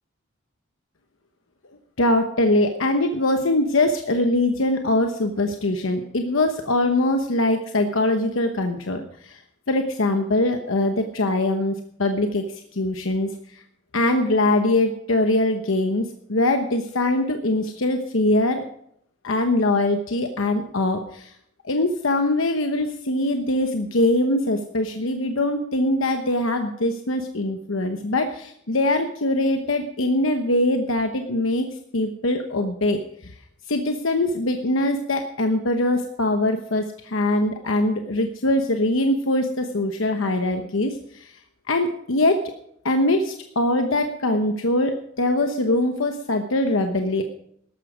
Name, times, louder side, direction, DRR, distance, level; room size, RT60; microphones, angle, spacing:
voice 1, 2.0-9.4 9.7-12.4 12.7-13.6 13.9-18.6 19.2-21.3 21.6-31.7 31.9-33.3 33.7-41.3 41.7-42.4 42.8-47.2, left 1 dB, 80° left, 5 dB, 1.0 m, -22 dB
14.0 x 12.0 x 5.0 m, 0.71 s
head